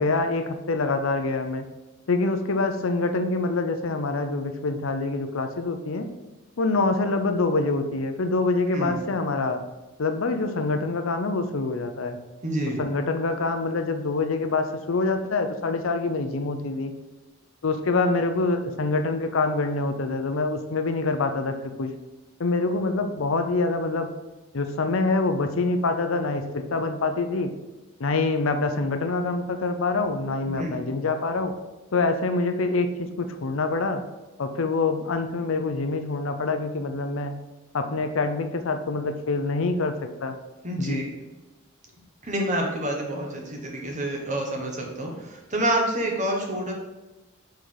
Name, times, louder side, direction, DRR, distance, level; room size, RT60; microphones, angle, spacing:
voice 1, 0.0-1.7 2.1-6.1 6.6-9.6 10.0-12.2 12.8-16.9 17.6-21.9 22.4-24.1 24.5-27.5 28.0-31.5 31.9-34.0 34.4-37.4 37.7-40.4 40.8-41.1, left 3 dB, 75° left, 7 dB, 0.6 m, -25 dB
voice 2, 12.4-12.8 30.5-30.9 40.6-41.1 42.2-46.7, right 1 dB, 35° right, 0 dB, 1.3 m, -28 dB
5.2 x 4.5 x 4.7 m, 1.1 s
head